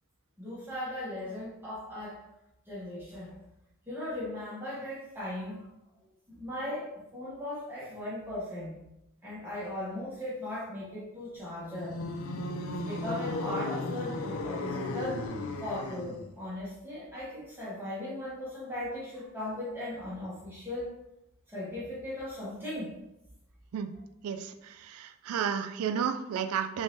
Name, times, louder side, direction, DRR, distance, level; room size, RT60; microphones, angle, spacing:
voice 1, 0.4-2.2 2.7-3.3 3.9-5.6 6.3-8.8 9.2-11.9 12.6-15.2 15.6-20.9 21.5-22.9, left 1 dB, 10° right, -9 dB, 1.0 m, -38 dB
sound 1, 11.7-16.3, left 2 dB, 75° left, 0.4 m, -35 dB
voice 2, 24.2-26.8, right 7 dB, 90° right, 10 dB, 0.3 m, -32 dB
3.5 x 3.1 x 2.7 m, 0.87 s
head